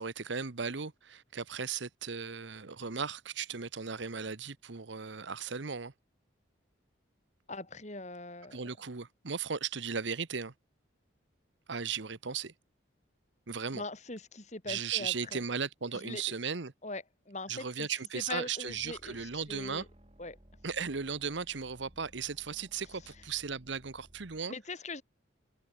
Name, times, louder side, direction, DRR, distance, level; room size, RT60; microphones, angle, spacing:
voice 1, 0.0-5.9 8.5-10.5 11.7-12.5 13.5-13.8 14.7-16.7 17.5-19.8 20.6-24.5, right 6 dB, 70° right, 1.0 m, -36 dB
voice 2, 7.5-8.7 13.7-15.4 15.9-16.2 16.8-17.9 18.1-19.9 20.2-20.4 24.5-25.0, left 2 dB, 35° left, 4.8 m, -41 dB
sound 1, 18.7-24.4, equal, 30° right, 3.5 m, -59 dB
head